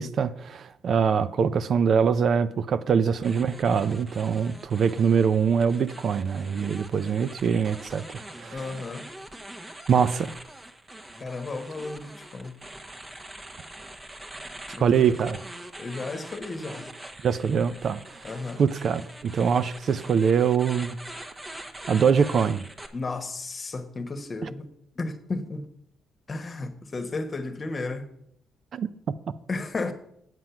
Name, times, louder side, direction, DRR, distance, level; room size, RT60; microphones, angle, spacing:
voice 1, 0.0-8.0 8.4-8.6 9.9-10.3 14.8-15.4 17.2-18.0 18.6-21.0 21.9-22.6 28.7-28.9, right 6 dB, 55° right, 0.4 m, -23 dB
sound 1, 3.2-22.9, right 1 dB, 15° right, 1.1 m, -43 dB
voice 2, 8.5-9.1 11.2-12.6 14.7-15.2 15.8-16.9 18.2-18.6 22.9-24.7 24.9-25.7 26.3-28.1 29.5-29.9, left 3 dB, 35° left, 1.2 m, -33 dB
7.7 x 7.5 x 5.8 m
cardioid pair, 90°, 0 cm